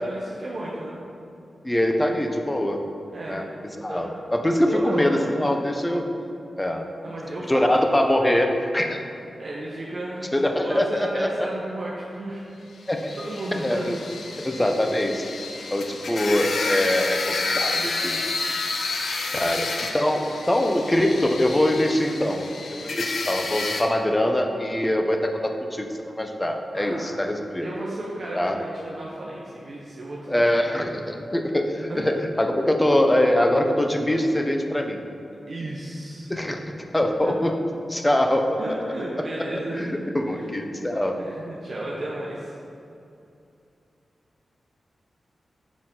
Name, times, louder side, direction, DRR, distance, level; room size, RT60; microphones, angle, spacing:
voice 1, 0.0-1.0 3.1-3.5 3.9-4.0 4.7-5.2 7.0-7.7 9.4-12.5 12.9-14.0 26.7-27.1 27.6-30.5 31.9-32.1 35.5-36.3 37.2-37.4 38.6-40.0 40.3-40.5 40.8-42.6, right 1 dB, 60° right, -5 dB, 0.7 m, -34 dB
voice 2, 1.6-2.8 3.3-6.1 6.6-7.1 7.5-9.0 10.3-11.5 12.9-13.2 13.5-14.0 14.4-15.3 15.7-18.2 19.3-22.5 22.8-27.7 28.3-28.6 30.3-35.0 36.3-36.6 36.9-37.6 37.9-38.6 39.5-41.2, left 1 dB, 15° left, 4 dB, 0.6 m, -23 dB
sound 1, 12.9-23.8, left 3 dB, 75° left, 0.5 m, -30 dB
5.9 x 4.4 x 3.7 m, 2.7 s
cardioid pair, 65°, 0 cm